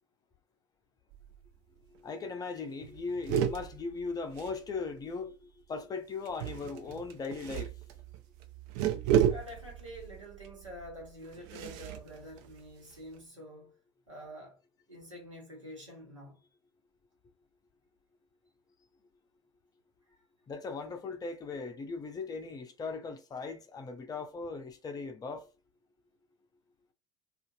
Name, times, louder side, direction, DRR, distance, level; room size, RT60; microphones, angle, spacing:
sound 1, 1.1-1.6 1.9-2.0 2.2-2.5 2.8-5.1 6.2-13.2, right 9 dB, 50° right, 0.4 m, -34 dB
voice 1, 1.9-7.8 20.5-25.5, left 4 dB, 25° left, 0.6 m, -38 dB
voice 2, 9.3-13.7 14.1-14.6 14.9-16.4 20.1-20.2, equal, 85° right, 1.2 m, -47 dB
2.6 x 2.4 x 2.5 m
figure-of-eight pair, 70°, 16 cm